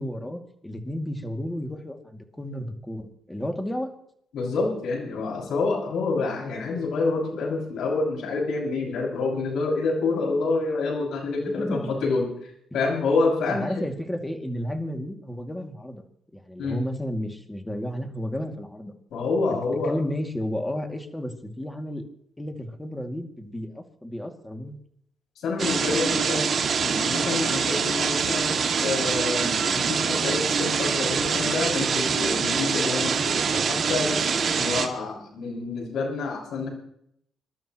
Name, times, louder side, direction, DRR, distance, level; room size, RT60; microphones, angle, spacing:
voice 1, 0.0-3.9 11.4-11.8 12.1-12.2 13.6-16.0 16.3-18.9 19.8-22.0 22.4-24.8, left 1 dB, 10° left, 4 dB, 2.4 m, -32 dB
voice 2, 4.3-12.3 12.7-13.8 16.6-16.8 19.1-19.9 25.4-26.4 26.8-34.2 34.6-36.7, left 3 dB, 75° left, 0 dB, 6.3 m, -27 dB
sound 1, 25.6-34.9, right 6 dB, 50° right, 2.1 m, -25 dB
26.5 x 12.5 x 3.1 m, 0.70 s
cardioid pair, 90°, 0 cm